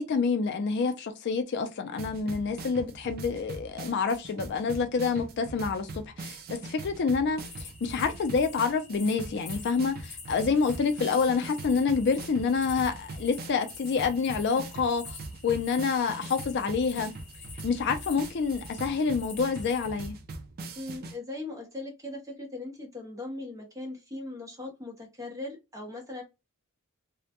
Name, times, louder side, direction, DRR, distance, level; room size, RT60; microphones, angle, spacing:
voice 1, 0.0-17.1 17.6-20.1, left 5 dB, 55° left, 0.4 m, -28 dB
sound 1, 2.0-21.2, right 2 dB, 45° right, 0.4 m, -42 dB
sound 2, 7.4-20.0, left 4 dB, 35° left, 0.8 m, -47 dB
voice 2, 20.8-26.2, left 2 dB, 15° right, 0.7 m, -39 dB
2.1 x 2.0 x 2.8 m
head